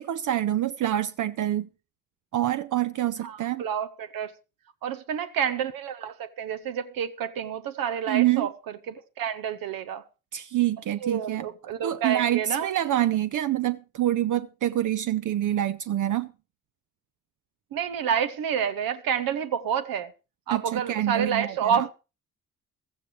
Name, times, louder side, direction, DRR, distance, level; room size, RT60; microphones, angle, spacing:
voice 1, 0.0-1.7 2.3-3.6 8.1-8.5 10.3-11.5 11.8-16.3 20.5-21.9, right 13 dB, 65° right, 0.5 m, -26 dB
voice 2, 3.2-4.3 4.8-8.5 8.9-10.0 11.0-12.7 17.7-20.1 20.5-21.9, right 8 dB, 85° right, 0.8 m, -29 dB
15.5 x 14.0 x 3.2 m
cardioid pair, 65°, 34 cm